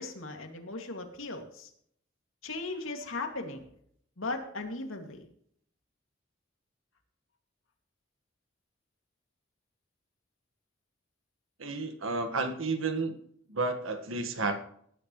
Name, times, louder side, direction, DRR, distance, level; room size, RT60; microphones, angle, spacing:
voice 1, 0.0-1.7 2.4-3.6 4.2-5.3, left 3 dB, 80° left, 3 dB, 2.4 m, -37 dB
voice 2, 11.6-13.1 13.5-14.6, right 3 dB, 85° right, 8 dB, 1.7 m, -31 dB
19.0 x 10.5 x 3.2 m, 0.65 s
head